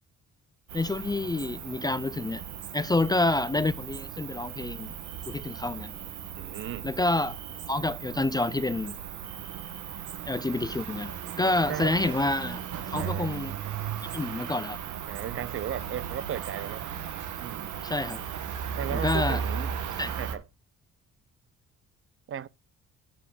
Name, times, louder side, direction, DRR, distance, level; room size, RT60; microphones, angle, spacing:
voice 1, 0.7-2.4 2.7-4.9 5.3-5.9 6.8-7.4 7.7-9.0 10.3-11.1 11.4-12.6 12.9-13.5 14.0-14.8 17.8-18.2 18.9-19.4 20.0-20.1, left 2 dB, 15° left, 0.4 m, -28 dB
Cricket, 0.7-20.4, right 8 dB, 80° right, 1.3 m, -36 dB
voice 2, 6.4-6.9 11.4-12.0 12.9-13.4 15.1-16.8 17.4-17.8 18.7-19.7 20.1-20.4 22.3-22.5, right 10 dB, 45° right, 0.5 m, -36 dB
7.2 x 7.0 x 5.0 m
cardioid pair, 90°, 30 cm